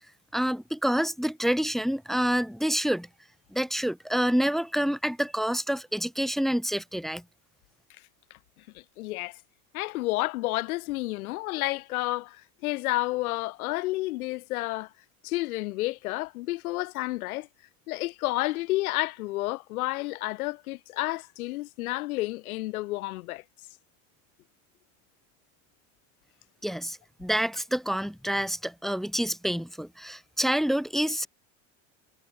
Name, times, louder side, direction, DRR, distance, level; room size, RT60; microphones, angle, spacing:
voice 1, 0.3-3.1 3.5-7.2 26.6-31.3, equal, ahead, 0.5 m, -27 dB
voice 2, 8.7-9.4 9.7-14.9 15.2-17.5 17.9-23.4, left 19 dB, 85° left, 2.7 m, -30 dB
supercardioid pair, 115°, 42 cm